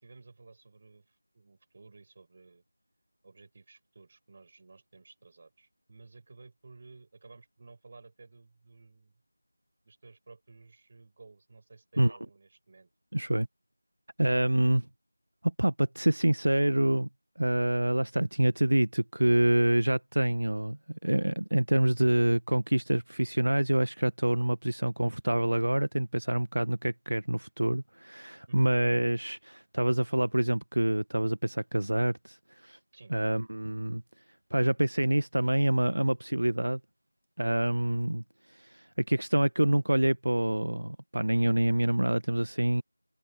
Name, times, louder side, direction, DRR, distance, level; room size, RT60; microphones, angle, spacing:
voice 1, 0.0-2.6 3.2-9.1 9.8-12.9 28.5-28.7 32.9-33.1, right 3 dB, 30° right, 5.5 m, -54 dB
voice 2, 13.1-13.5 14.2-14.9 15.4-17.1 17.4-32.4 32.6-32.8 33.1-34.0 34.5-36.8 37.4-38.2 38.6-42.8, right 1 dB, 80° right, 1.2 m, -26 dB
figure-of-eight pair, 175°, 0 cm